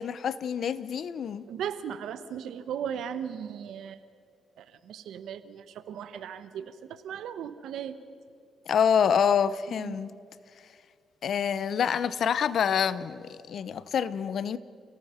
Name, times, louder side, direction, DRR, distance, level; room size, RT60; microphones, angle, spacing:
voice 1, 0.0-1.4 8.7-10.1 11.2-14.6, left 7 dB, 60° left, 0.8 m, -27 dB
voice 2, 1.5-4.0 4.6-8.0 9.7-10.0, right 8 dB, 75° right, 1.1 m, -37 dB
29.5 x 18.0 x 5.8 m
cardioid pair, 90°, 0 cm